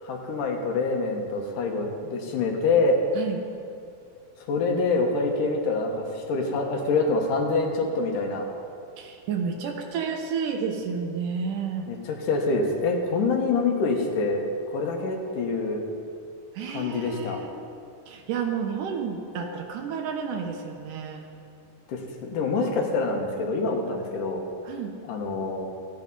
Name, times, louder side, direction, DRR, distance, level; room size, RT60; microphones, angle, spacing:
voice 1, 0.0-3.0 4.5-8.5 11.9-15.8 16.7-17.4 21.9-24.4 25.0-25.7, left 3 dB, 75° left, 2 dB, 2.7 m, -26 dB
voice 2, 9.0-11.9 16.6-17.5 18.1-21.2 24.7-25.0, right 6 dB, 75° right, 3 dB, 2.5 m, -31 dB
14.5 x 9.7 x 5.4 m, 2.4 s
omnidirectional pair, 3.8 m